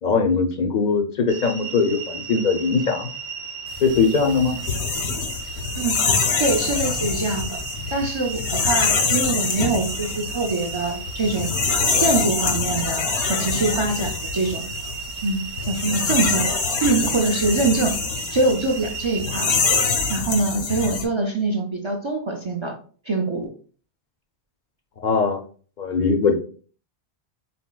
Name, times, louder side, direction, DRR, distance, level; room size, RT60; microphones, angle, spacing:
voice 1, 0.0-3.1 3.8-4.5 25.0-25.4 25.8-26.3, left 4 dB, 55° left, 3 dB, 0.6 m, -20 dB
sound 1, 1.3-20.2, right 5 dB, 75° right, 0.8 m, -35 dB
sound 2, 3.8-21.0, left 5 dB, 80° left, 1.1 m, -25 dB
voice 2, 6.4-7.6 7.9-11.5 12.0-14.7 15.2-16.5 16.8-18.0 18.3-19.6 20.1-22.8 23.1-23.5, right 3 dB, 45° right, 2 dB, 0.4 m, -24 dB
4.2 x 4.0 x 2.2 m, 0.42 s
omnidirectional pair, 1.1 m